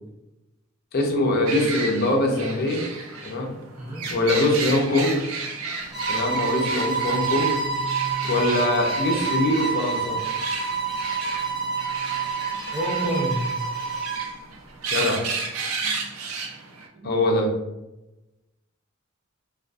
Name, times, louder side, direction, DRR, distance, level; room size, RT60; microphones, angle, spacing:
voice 1, 0.9-2.9 3.2-3.5 4.1-5.3 6.1-7.6 8.2-10.2 14.9-15.2 17.0-17.5, left 1 dB, 45° left, 1 dB, 0.4 m, -23 dB
sound 1, 1.5-16.9, right 4 dB, 80° right, 0.4 m, -33 dB
voice 2, 3.8-4.1 12.4-13.4 14.9-15.1 15.8-16.0 16.9-17.2, right 1 dB, 40° right, -3 dB, 0.7 m, -30 dB
sound 2, 5.9-14.3, right 5 dB, ahead, 0.8 m, -28 dB
2.5 x 2.3 x 2.2 m, 0.95 s
head